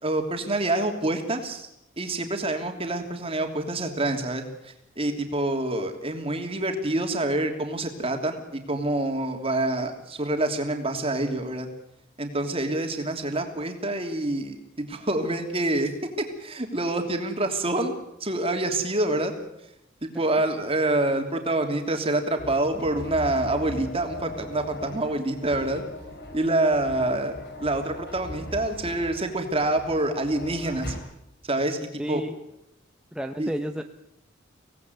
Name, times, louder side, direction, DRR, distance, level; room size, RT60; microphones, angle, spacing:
voice 1, 0.0-1.7 2.0-11.7 12.2-15.9 16.4-19.3 20.0-25.8 26.3-27.3 27.6-30.9 31.4-32.2 33.4-33.5, right 2 dB, 30° right, 4 dB, 3.1 m, -27 dB
sound 1, 22.4-31.0, left 1 dB, 55° left, 5.0 m, -39 dB
voice 2, 32.0-32.3 33.1-33.8, equal, 5° right, 5 dB, 0.9 m, -31 dB
25.0 x 18.0 x 8.1 m, 0.83 s
head